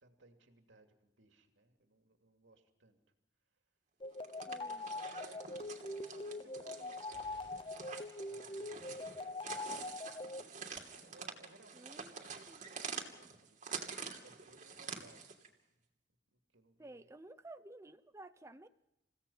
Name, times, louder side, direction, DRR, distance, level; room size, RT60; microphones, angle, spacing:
voice 1, 0.0-3.0 4.8-5.6 6.1-9.4 10.9-12.5 13.1-15.6 16.3-17.1, right 2 dB, 90° right, 4 dB, 2.7 m, -63 dB
sound 1, 4.0-10.4, left 2 dB, 25° left, 0.8 m, -43 dB
sound 2, 4.1-15.5, right 5 dB, 40° right, 2.9 m, -47 dB
voice 2, 4.5-4.9 6.5-6.6 6.8-6.9 11.7-12.1 12.5-12.6 16.8-18.7, right 2 dB, 15° right, 10 dB, 0.7 m, -53 dB
sound 3, 7.1-8.4, left 2 dB, 85° left, 4.6 m, -64 dB
29.5 x 16.5 x 5.7 m, 0.91 s
head